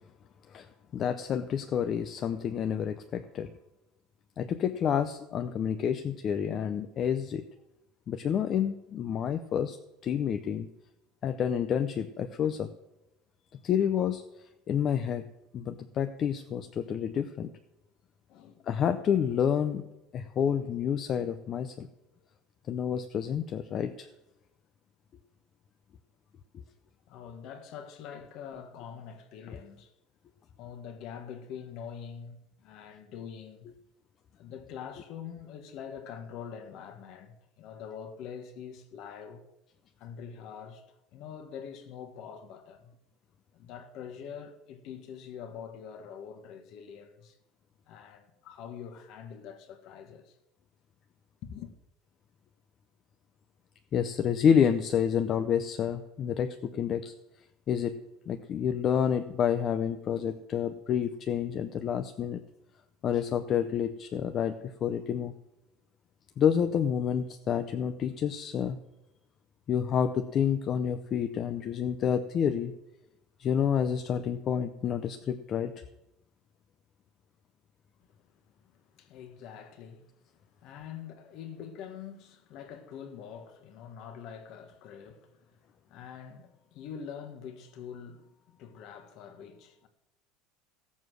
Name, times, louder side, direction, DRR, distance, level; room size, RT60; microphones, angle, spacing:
voice 1, 0.9-3.5 4.4-7.4 8.1-9.8 10.0-10.7 11.2-12.7 13.6-14.2 14.7-15.3 15.5-17.5 18.7-19.8 20.1-21.9 22.7-24.1 26.5-26.6 53.9-57.1 57.7-58.0 58.3-62.4 63.0-64.6 64.8-65.3 66.4-68.8 69.7-72.7 73.4-75.7, left 8 dB, 25° left, 0.6 m, -29 dB
voice 2, 18.3-18.7 22.2-22.3 27.1-29.9 30.6-33.7 34.4-39.4 40.0-40.8 41.1-42.9 43.5-47.4 47.9-50.4 51.4-51.7 78.7-80.2 80.4-89.9, left 7 dB, 45° left, 1.5 m, -45 dB
16.0 x 7.2 x 6.3 m
cardioid pair, 175°, 0 cm